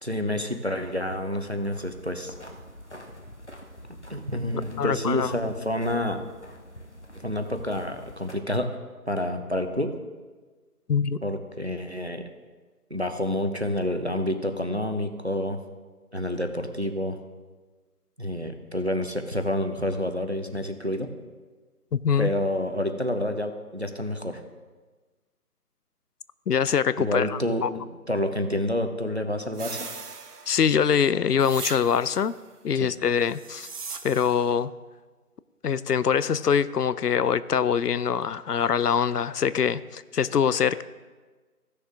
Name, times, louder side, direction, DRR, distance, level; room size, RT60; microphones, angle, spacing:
voice 1, 0.0-2.3 4.1-6.2 7.2-8.8 9.1-9.9 11.2-12.3 12.9-15.6 16.1-17.2 18.2-21.1 22.2-24.4 27.0-29.9 32.8-32.9, left 1 dB, 45° right, 7 dB, 0.7 m, -28 dB
sound 1, 0.5-8.4, equal, 50° left, 0.9 m, -46 dB
voice 2, 4.8-5.3 10.9-11.2 21.9-22.3 26.5-27.7 30.5-32.4 32.6-33.7 34.0-34.7 35.6-40.8, left 7 dB, 85° left, 17 dB, 0.5 m, -24 dB
sound 2, 29.5-30.7 31.4-32.3 33.2-34.5, right 4 dB, 80° right, 0.8 m, -39 dB
15.0 x 6.5 x 3.6 m, 1.3 s
figure-of-eight pair, 180°, 46 cm